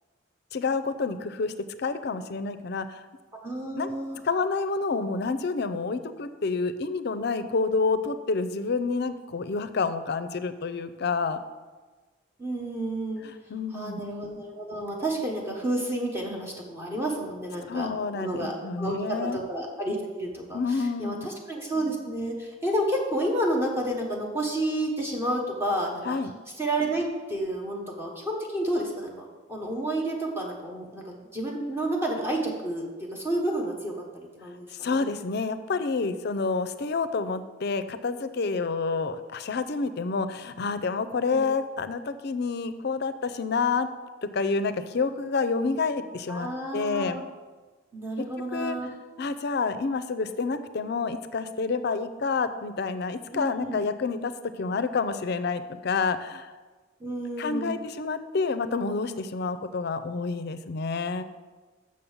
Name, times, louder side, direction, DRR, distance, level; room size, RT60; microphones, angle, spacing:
voice 1, 0.5-1.5 1.8-3.0 3.7-3.9 4.2-11.4 13.2-14.0 17.7-19.4 20.5-21.3 26.0-26.3 34.7-43.9 44.2-47.2 48.5-48.8 49.2-54.3 54.6-56.5 57.4-61.2, left 4 dB, 55° left, 11 dB, 0.5 m, -28 dB
voice 2, 3.3-4.2 12.4-13.2 13.7-17.9 18.1-26.2 26.6-29.2 29.5-35.0 41.3-41.5 46.3-47.2 47.9-48.9 53.3-53.8 57.0-57.7, right 1 dB, 10° right, -1 dB, 1.1 m, -30 dB
6.5 x 5.4 x 7.1 m, 1.3 s
head